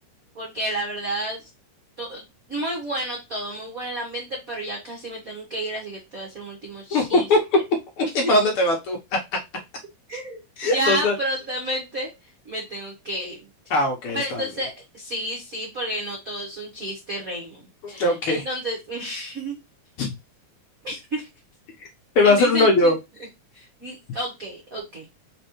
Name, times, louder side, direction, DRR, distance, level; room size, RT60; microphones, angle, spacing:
voice 1, 0.3-1.5 2.0-7.3 8.2-8.3 10.1-12.1 12.4-13.4 14.1-17.6 17.9-19.5 20.8-21.3 22.2-22.9 23.5-25.1, right 1 dB, 75° right, -1 dB, 0.7 m, -31 dB
voice 2, 6.9-7.4 8.0-9.0 10.6-11.1 13.7-14.4 17.8-18.4 20.0-20.1 22.1-23.0, left 2 dB, 85° left, 1 dB, 1.2 m, -20 dB
4.3 x 3.9 x 2.9 m, 0.23 s
omnidirectional pair, 3.7 m